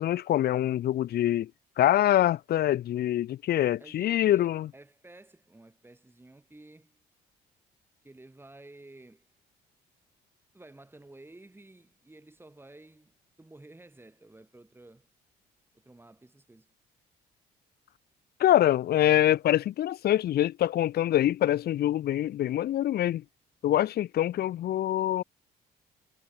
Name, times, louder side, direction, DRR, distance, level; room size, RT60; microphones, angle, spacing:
voice 1, 0.0-1.5 1.8-4.7 18.4-23.2 23.6-25.2, left 12 dB, 60° left, 0.8 m, -25 dB
voice 2, 3.8-7.0 8.0-9.3 10.5-15.1 15.7-16.7, right 2 dB, 10° right, 7.8 m, -52 dB
cardioid pair, 90°, 18 cm